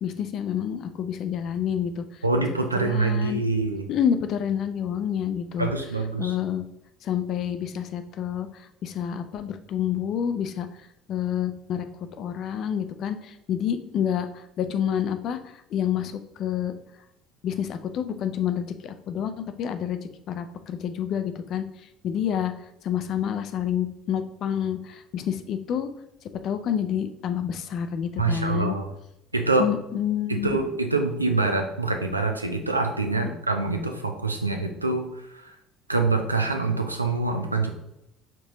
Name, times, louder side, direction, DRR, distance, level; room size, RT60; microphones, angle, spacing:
voice 1, 0.0-2.0 2.8-3.4 3.9-5.7 6.2-6.6 7.0-8.5 8.8-10.7 11.1-11.9 12.2-15.4 15.7-16.1 16.4-16.7 17.4-20.0 20.3-21.6 22.0-22.5 22.8-25.9 26.4-28.8 29.6-30.6 33.2-33.3, left 9 dB, 50° left, 9 dB, 0.4 m, -28 dB
voice 2, 2.2-3.9 5.6-6.4 28.2-28.9 29.3-29.7 30.3-35.1 35.3-35.5 35.9-37.7, right 3 dB, 90° right, 4 dB, 0.4 m, -25 dB
4.4 x 3.8 x 3.0 m, 0.81 s
figure-of-eight pair, 60°, 0 cm